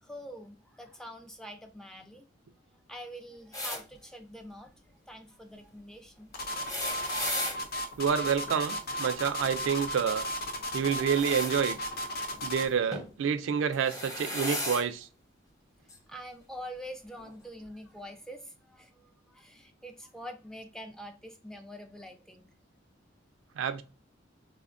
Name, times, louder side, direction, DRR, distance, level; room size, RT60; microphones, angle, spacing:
voice 1, 0.0-2.2 2.9-4.7 5.1-6.4 10.6-10.7 16.1-22.5, equal, 5° left, 0.3 m, -45 dB
sound 1, 3.5-3.8 6.4-7.6 10.8-11.5 12.9-13.1 13.7-14.8 15.9-16.0 17.2-17.3, left 1 dB, 20° left, 0.7 m, -35 dB
sound 2, 6.3-12.8, equal, 50° left, 0.5 m, -35 dB
voice 2, 8.0-10.2 10.7-11.8 12.4-15.1 23.6-23.8, right 7 dB, 80° right, 0.3 m, -28 dB
3.4 x 2.1 x 2.5 m
head